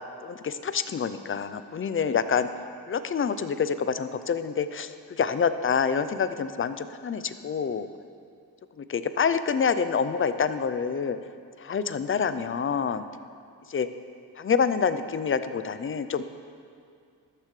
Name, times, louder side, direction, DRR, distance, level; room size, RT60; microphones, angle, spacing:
voice 1, 0.2-2.5 2.9-7.9 8.8-11.2 11.6-13.0 13.7-13.9 14.4-16.2, left 6 dB, 30° left, 12 dB, 0.5 m, -27 dB
13.5 x 13.0 x 3.3 m, 2.3 s
cardioid pair, 115°, 40 cm